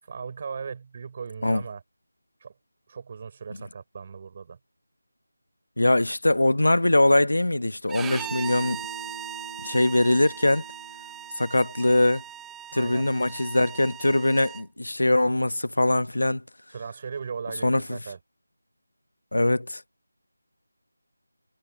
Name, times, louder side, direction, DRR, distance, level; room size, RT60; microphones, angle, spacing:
voice 1, 0.0-1.8 2.4-2.5 2.9-4.6 12.7-13.1 16.7-18.2, right 6 dB, 30° right, 5.7 m, -37 dB
voice 2, 5.8-8.8 9.6-10.6 11.4-12.2 12.7-16.4 17.6-18.0 19.3-19.8, left 1 dB, 90° left, 1.0 m, -22 dB
Bowed string instrument, 7.9-14.6, right 11 dB, 5° right, 0.6 m, -39 dB
Bass guitar, 8.1-12.5, right 2 dB, 80° right, 2.3 m, -46 dB
figure-of-eight pair, 170°, 0 cm